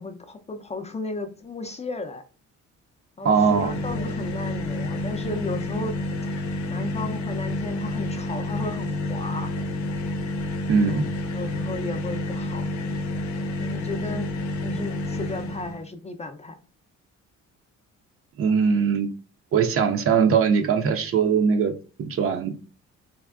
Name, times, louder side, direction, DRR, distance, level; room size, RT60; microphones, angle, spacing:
voice 1, 0.0-2.2 3.2-6.0 6.2-6.3 6.7-9.5 10.9-11.1 11.3-12.7 13.6-14.3 14.6-16.6, left 2 dB, 20° left, 0.4 m, -34 dB
sound 1, 3.2-15.8, left 2 dB, 70° left, 0.6 m, -29 dB
voice 2, 3.2-3.7 10.7-11.0 18.4-19.1 19.5-21.7 22.0-22.5, right 6 dB, 50° right, 0.5 m, -21 dB
3.4 x 2.1 x 2.3 m
cardioid pair, 90°, 30 cm